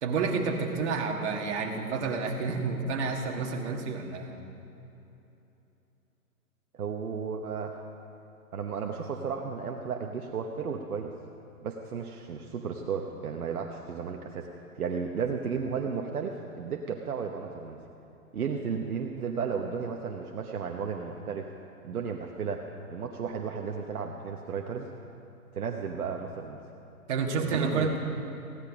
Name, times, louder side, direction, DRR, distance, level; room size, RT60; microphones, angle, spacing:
voice 1, 0.0-4.4 27.1-28.0, right 4 dB, 45° right, 2 dB, 1.8 m, -29 dB
voice 2, 6.7-7.8 8.5-11.1 11.6-17.8 18.3-21.5 21.8-24.9 25.5-26.6 27.4-28.0, right 6 dB, 70° right, 2 dB, 1.1 m, -34 dB
16.0 x 10.5 x 5.1 m, 2.9 s
hypercardioid pair, 140°, 46 cm